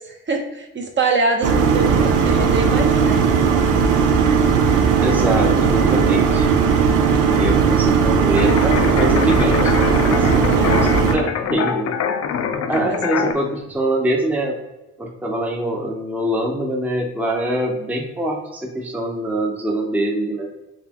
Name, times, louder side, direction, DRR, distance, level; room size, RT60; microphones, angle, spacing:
voice 1, 0.0-3.1 10.5-11.0 12.7-13.0 13.2-13.4, right 3 dB, 40° right, 2 dB, 0.8 m, -24 dB
sound 1, 1.4-11.1, right 6 dB, 90° right, 0.6 m, -17 dB
voice 2, 5.0-6.5 7.3-11.9 12.7-14.5 15.0-20.5, right 1 dB, 5° right, 0 dB, 0.6 m, -24 dB
sound 2, 8.4-13.3, left 7 dB, 55° left, 0.5 m, -24 dB
4.2 x 3.3 x 2.8 m, 1.0 s
cardioid pair, 90°, 30 cm